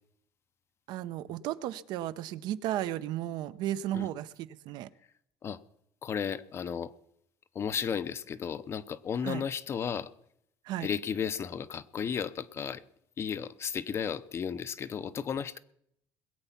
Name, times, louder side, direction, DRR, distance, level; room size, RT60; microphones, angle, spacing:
voice 1, 0.9-4.9 9.2-9.4 10.6-10.9, right 12 dB, 65° right, 14 dB, 0.7 m, -34 dB
voice 2, 6.0-6.9 7.5-10.1 10.8-12.8 13.2-15.6, left 7 dB, 35° left, 15 dB, 0.6 m, -34 dB
21.0 x 8.2 x 5.8 m, 0.73 s
cardioid pair, 140°, 8 cm